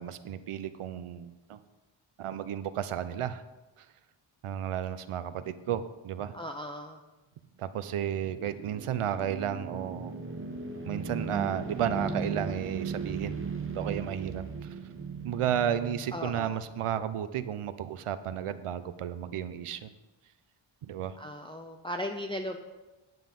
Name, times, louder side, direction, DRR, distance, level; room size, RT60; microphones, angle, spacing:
voice 1, 0.0-1.6 2.2-3.4 4.4-6.3 7.6-10.1 10.8-13.4 13.7-14.7 15.2-19.9 20.8-21.2, right 10 dB, 85° right, 12 dB, 0.8 m, -33 dB
voice 2, 6.3-7.0 16.1-16.6 21.2-22.6, left 1 dB, 10° left, 3 dB, 0.5 m, -37 dB
sound 1, 7.7-17.0, right 4 dB, 25° right, 0.9 m, -37 dB
9.8 x 9.4 x 5.4 m, 1.1 s
wide cardioid pair, 145°, 50 cm